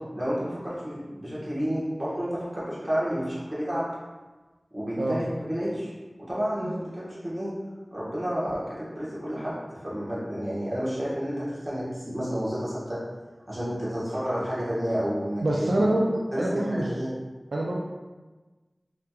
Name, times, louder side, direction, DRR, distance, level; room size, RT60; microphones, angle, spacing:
voice 1, 0.1-3.9 4.7-5.9 6.3-7.5 7.9-13.0 13.5-15.7 16.3-17.1, equal, 35° right, -9 dB, 1.3 m, -30 dB
voice 2, 15.4-16.9 17.5-17.8, right 1 dB, 85° right, -3 dB, 0.3 m, -25 dB
3.3 x 2.9 x 2.3 m, 1.2 s
wide cardioid pair, 45°, 0 cm